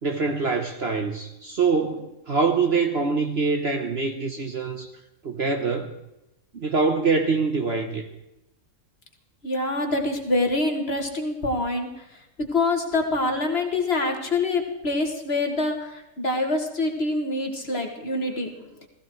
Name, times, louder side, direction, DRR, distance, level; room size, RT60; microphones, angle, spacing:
voice 1, 0.0-4.9 5.2-6.0 6.5-8.1, right 4 dB, 45° right, 5 dB, 1.1 m, -24 dB
voice 2, 9.4-12.0 12.4-18.9, left 2 dB, 40° left, 3 dB, 1.8 m, -26 dB
16.0 x 15.0 x 4.6 m, 0.89 s
omnidirectional pair, 1.7 m